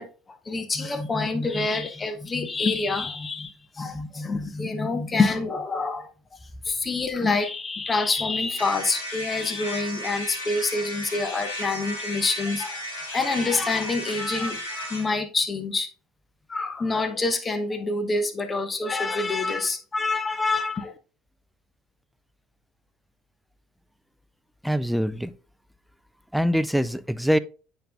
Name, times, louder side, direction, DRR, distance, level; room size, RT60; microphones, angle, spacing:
voice 1, 0.0-6.4 6.6-12.8 13.1-15.9 16.5-20.9, left 3 dB, 25° left, 0.9 m, -27 dB
sound 1, 8.6-15.1, left 1 dB, 90° left, 2.4 m, -34 dB
voice 2, 24.6-25.3 26.3-27.4, equal, ahead, 0.5 m, -23 dB
8.9 x 5.4 x 2.3 m
hypercardioid pair, 70°, 0 cm